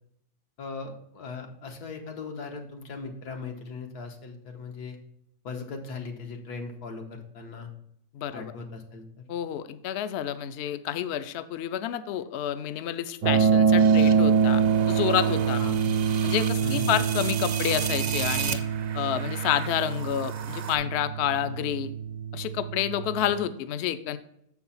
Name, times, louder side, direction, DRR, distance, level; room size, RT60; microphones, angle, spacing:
voice 1, 0.6-5.0 5.4-7.7 8.3-9.2 15.6-15.9 16.6-17.0, left 4 dB, 90° left, 4 dB, 1.6 m, -38 dB
voice 2, 8.1-8.5 9.3-15.6 16.2-18.6 18.9-21.9 22.3-24.2, left 10 dB, 70° left, 11 dB, 0.6 m, -29 dB
sound 1, 13.2-23.3, right 6 dB, 75° right, 1.2 m, -25 dB
sound 2, 13.8-20.7, right 7 dB, 55° right, 0.7 m, -36 dB
6.8 x 4.6 x 5.5 m, 0.74 s
omnidirectional pair, 1.6 m